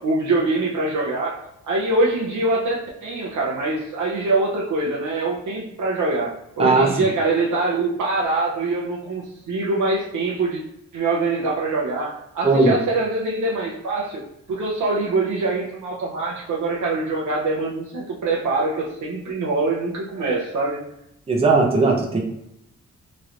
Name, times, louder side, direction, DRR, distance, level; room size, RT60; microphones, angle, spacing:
voice 1, 0.0-10.6 10.9-14.2 14.5-20.8, right 2 dB, 85° right, -2 dB, 0.7 m, -24 dB
voice 2, 12.4-12.7 21.3-22.2, right 3 dB, 20° right, 0 dB, 0.6 m, -17 dB
3.1 x 2.9 x 2.5 m, 0.80 s
wide cardioid pair, 130°, 30 cm